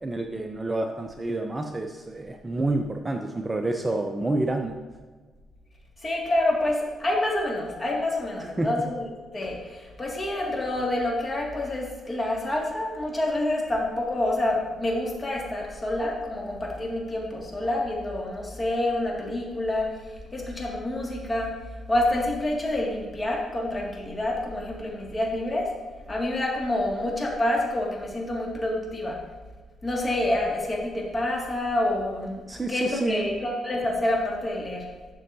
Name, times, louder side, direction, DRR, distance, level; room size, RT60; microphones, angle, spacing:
voice 1, 0.0-4.7 8.4-8.7 32.5-33.2, right 2 dB, 20° right, 4 dB, 0.6 m, -28 dB
voice 2, 6.0-9.0 9.3-21.5 21.9-25.7 26.1-29.2 29.8-32.4 32.7-34.8, left 1 dB, 25° left, -2 dB, 2.2 m, -27 dB
12.0 x 6.3 x 2.8 m, 1.4 s
cardioid pair, 90°, 0 cm